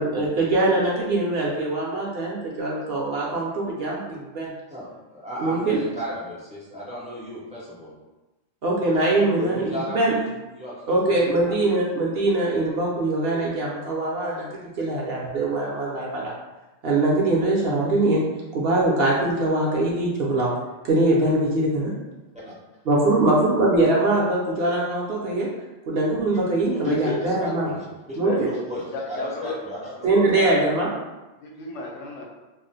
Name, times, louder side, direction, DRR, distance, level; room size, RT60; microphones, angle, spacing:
voice 1, 0.0-4.5 5.4-5.8 8.6-10.2 10.9-16.3 16.8-18.2 18.5-20.5 20.8-21.9 22.9-25.5 25.9-27.7 28.2-28.5 30.0-30.9, right 2 dB, 60° right, -3 dB, 0.7 m, -22 dB
voice 2, 4.7-7.9 9.4-11.6 22.4-22.5 26.6-30.3, equal, 10° right, -7 dB, 0.4 m, -35 dB
voice 3, 26.8-27.2 28.2-28.4 28.9-29.6 30.0-30.7 31.4-32.2, left 2 dB, 75° left, -1 dB, 0.9 m, -31 dB
2.4 x 2.0 x 3.9 m, 1.1 s
omnidirectional pair, 1.3 m